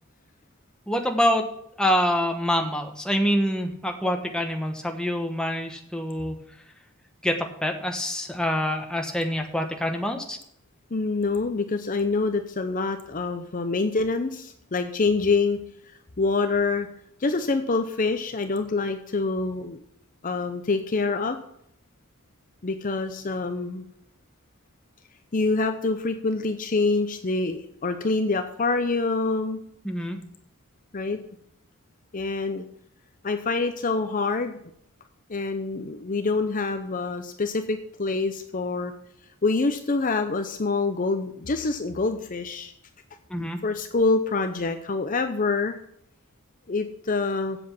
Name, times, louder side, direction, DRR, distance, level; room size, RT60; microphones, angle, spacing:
voice 1, 0.9-1.5 1.8-6.4 7.2-10.4 29.8-30.2 43.3-43.6, equal, 5° left, 3 dB, 1.1 m, -26 dB
voice 2, 10.9-15.6 16.2-16.9 17.2-19.8 20.2-21.4 22.6-23.9 25.3-29.6 30.9-31.2 32.1-32.6 33.2-34.6 35.3-38.9 39.4-42.7 43.4-45.8 46.7-47.6, left 3 dB, 35° left, 7 dB, 0.6 m, -26 dB
8.0 x 7.6 x 7.2 m, 0.72 s
head